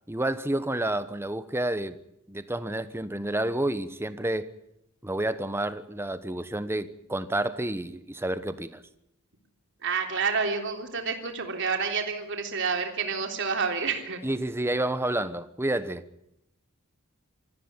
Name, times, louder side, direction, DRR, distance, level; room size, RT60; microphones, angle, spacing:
voice 1, 0.1-2.0 2.3-4.5 5.0-8.8 14.2-16.0, right 1 dB, 10° right, 1.1 m, -29 dB
voice 2, 9.8-14.2, right 5 dB, 60° right, 3.5 m, -29 dB
25.0 x 14.5 x 9.7 m
head